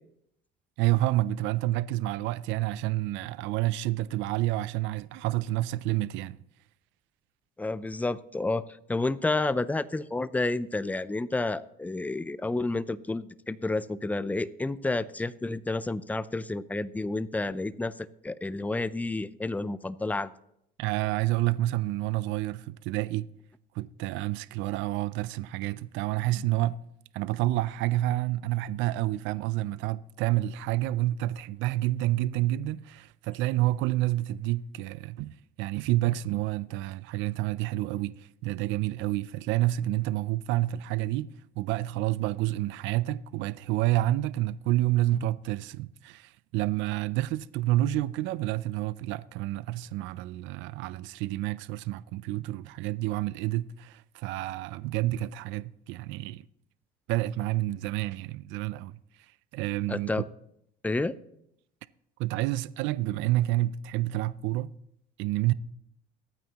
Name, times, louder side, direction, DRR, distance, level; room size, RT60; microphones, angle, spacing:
voice 1, 0.8-6.4 20.8-23.3 23.7-26.8 27.1-56.4 57.1-60.1 62.2-64.7 65.2-65.5, right 16 dB, 75° right, 0.5 m, -29 dB
voice 2, 7.6-8.6 8.9-20.3 59.9-60.2 60.8-61.2, left 2 dB, 10° left, 0.4 m, -30 dB
22.5 x 9.1 x 2.9 m
cardioid pair, 110°, 20 cm